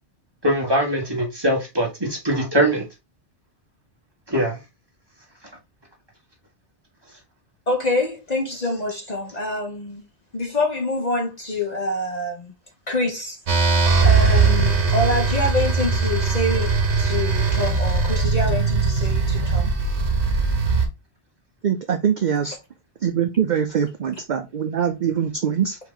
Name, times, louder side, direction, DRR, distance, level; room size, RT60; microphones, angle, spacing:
voice 1, 0.4-2.8 4.3-4.6, right 1 dB, 20° right, 1.8 m, -22 dB
voice 2, 7.7-10.0 10.3-12.5 12.9-13.4 14.0-16.7 17.0-19.7, left 2 dB, 40° left, 1.0 m, -26 dB
sound 1, 13.5-20.9, right 4 dB, 75° right, 1.4 m, -20 dB
voice 3, 21.6-22.6 23.0-25.8, right 8 dB, 50° right, 0.6 m, -23 dB
4.6 x 3.0 x 3.8 m
omnidirectional pair, 1.2 m